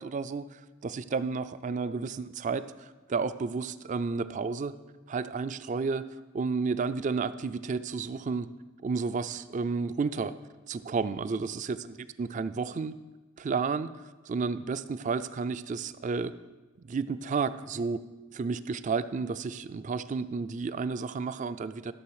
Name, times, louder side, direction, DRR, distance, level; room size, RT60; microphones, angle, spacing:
voice 1, 0.0-4.7 5.1-6.0 6.3-8.5 8.8-10.3 10.7-12.9 13.4-13.9 14.2-16.3 16.8-18.0 18.3-21.9, right 4 dB, 35° right, 14 dB, 0.3 m, -31 dB
13.0 x 6.8 x 4.8 m, 1.2 s
head